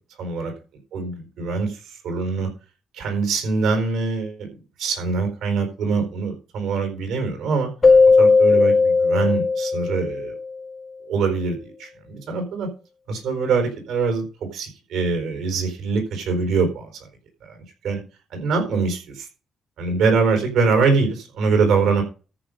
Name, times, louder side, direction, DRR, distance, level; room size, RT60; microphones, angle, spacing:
voice 1, 0.2-0.5 0.9-2.5 2.9-4.5 4.8-7.7 8.2-10.4 11.1-12.7 13.1-14.2 14.5-17.1 17.4-17.6 17.8-18.0 18.3-19.3 19.8-22.0, right 4 dB, 80° right, 5 dB, 4.4 m, -23 dB
Keyboard (musical), 7.8-10.6, left 4 dB, 35° left, 0.4 m, -16 dB
13.5 x 5.2 x 5.6 m, 0.35 s
cardioid pair, 90°, 0 cm